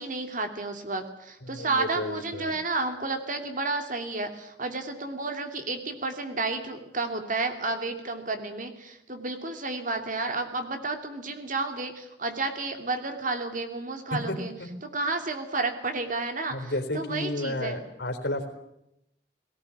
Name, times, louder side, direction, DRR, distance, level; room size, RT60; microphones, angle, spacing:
voice 1, 0.0-14.5 14.9-17.8, right 3 dB, 45° right, 6 dB, 2.7 m, -31 dB
voice 2, 1.4-2.5 14.3-14.4 14.6-14.7 16.5-18.5, left 1 dB, 65° left, 5 dB, 3.9 m, -32 dB
19.0 x 18.5 x 9.9 m, 0.82 s
head